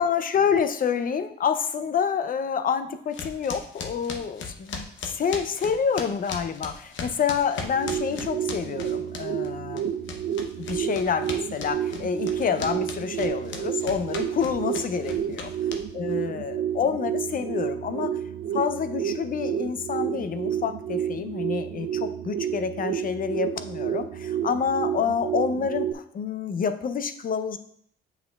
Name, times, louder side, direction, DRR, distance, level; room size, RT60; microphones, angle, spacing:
voice 1, 0.0-9.9 10.6-15.5 15.9-18.2 18.5-27.6, left 7 dB, 45° left, 10 dB, 0.5 m, -28 dB
sound 1, 3.1-9.5 9.8-16.1, left 4 dB, 70° left, 0.8 m, -37 dB
sound 2, 7.6-25.9, right 9 dB, 75° right, 0.5 m, -30 dB
7.5 x 5.8 x 2.3 m, 0.65 s
cardioid pair, 90°, 20 cm